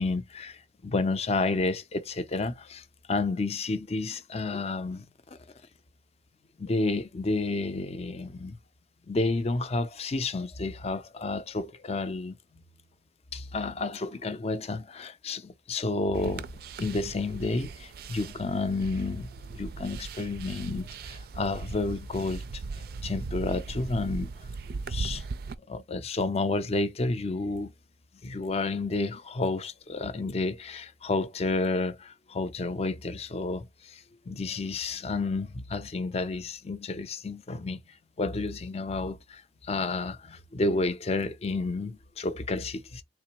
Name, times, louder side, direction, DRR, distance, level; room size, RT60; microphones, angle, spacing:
voice 1, 0.0-0.6 0.8-2.8 3.1-5.1 6.6-8.6 9.1-12.4 13.3-16.5 16.8-22.6 23.0-24.3 24.7-25.2 25.7-27.7 28.2-37.8 38.2-43.0, left 3 dB, 35° left, 0.5 m, -30 dB
sound 1, 16.1-25.5, right 4 dB, 55° right, 0.4 m, -38 dB
3.7 x 2.9 x 2.9 m
head